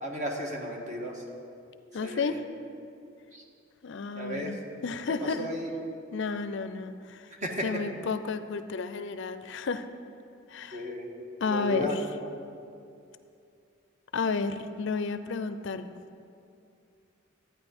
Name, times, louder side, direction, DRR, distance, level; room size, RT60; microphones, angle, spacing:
voice 1, 0.0-1.1 2.0-2.4 3.3-3.4 4.2-4.5 5.2-5.7 7.4-7.6 10.7-11.1 11.5-12.0, equal, 35° right, 0 dB, 1.4 m, -34 dB
voice 2, 1.9-2.4 3.8-4.6 4.8-5.5 6.1-7.2 7.6-9.9 10.5-10.9 11.4-12.0 14.1-15.9, left 4 dB, 60° left, 11 dB, 0.5 m, -31 dB
13.0 x 9.4 x 5.3 m, 2.5 s
head